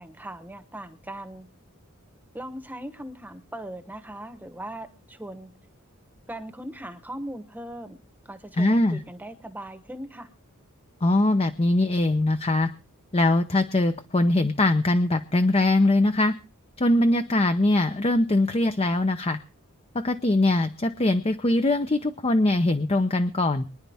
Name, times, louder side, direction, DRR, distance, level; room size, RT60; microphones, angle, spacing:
voice 1, 0.0-1.5 2.3-5.5 6.3-8.0 8.2-10.3, right 1 dB, 10° right, 9 dB, 1.0 m, -39 dB
voice 2, 8.6-9.0 11.0-12.7 13.1-16.3 16.8-19.4 19.9-23.7, left 2 dB, 25° left, 9 dB, 0.7 m, -22 dB
24.0 x 10.5 x 3.5 m, 0.33 s
head